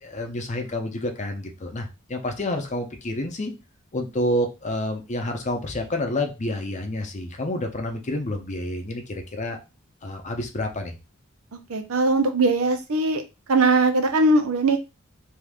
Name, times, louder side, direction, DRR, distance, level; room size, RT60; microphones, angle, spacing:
voice 1, 0.0-3.5 3.9-9.6 10.0-11.0, left 1 dB, 35° left, 4 dB, 0.6 m, -29 dB
voice 2, 11.7-13.2 13.5-14.8, right 2 dB, 90° right, 6 dB, 0.6 m, -20 dB
2.7 x 2.5 x 3.4 m, 0.27 s
head